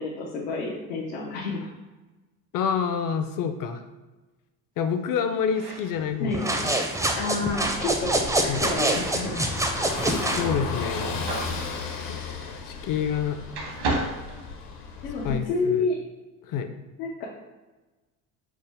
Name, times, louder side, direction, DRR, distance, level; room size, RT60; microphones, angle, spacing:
voice 1, 0.0-1.7 6.2-6.5 7.1-8.1 8.4-9.5 15.0-16.0 17.0-17.3, left 3 dB, 85° left, -4 dB, 0.8 m, -29 dB
voice 2, 2.5-3.8 4.8-6.8 8.5-8.6 10.3-11.4 12.1-12.2 12.7-13.4 15.2-15.9 16.4-16.7, left 7 dB, 45° left, 8 dB, 0.5 m, -28 dB
sound 1, 5.4-13.2 13.5-15.1, right 2 dB, 75° right, 1.1 m, -36 dB
sound 2, 6.3-10.5, right 1 dB, 5° right, 0.4 m, -26 dB
Car passing by / Engine, 7.5-15.4, left 4 dB, 65° left, 0.9 m, -35 dB
4.7 x 2.1 x 3.4 m, 1.2 s
hypercardioid pair, 70°, 46 cm